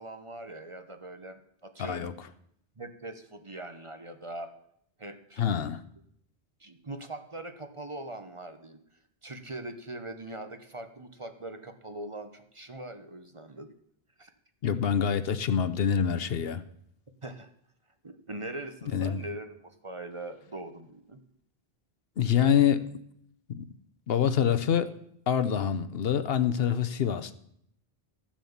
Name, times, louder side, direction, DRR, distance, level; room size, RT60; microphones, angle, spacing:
voice 1, 0.0-2.1 2.8-4.5 5.0-5.4 6.6-8.8 9.2-13.7 14.2-14.3 17.2-17.5 18.0-21.2, right 2 dB, 30° right, 8 dB, 0.9 m, -41 dB
voice 2, 1.8-2.1 5.4-5.8 14.6-16.6 18.9-19.2 22.2-22.9 23.5-23.7 24.1-24.9 25.3-27.3, left 8 dB, 70° left, 12 dB, 0.9 m, -26 dB
13.5 x 7.3 x 7.1 m, 0.70 s
omnidirectional pair, 1.1 m